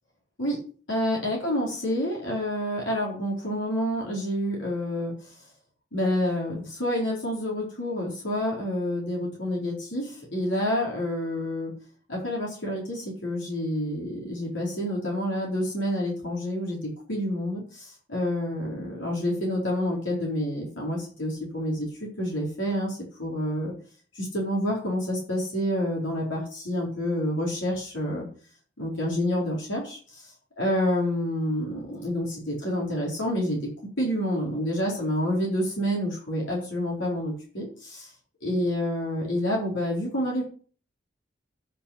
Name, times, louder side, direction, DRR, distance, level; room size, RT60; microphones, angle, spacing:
voice 1, 0.9-5.3 5.9-11.7 12.1-16.8 17.1-21.9 22.2-23.7 24.1-28.3 28.8-33.6 34.0-38.1 38.4-40.4, equal, 90° left, -3 dB, 4.4 m, -28 dB
9.7 x 5.7 x 8.2 m, 0.43 s
head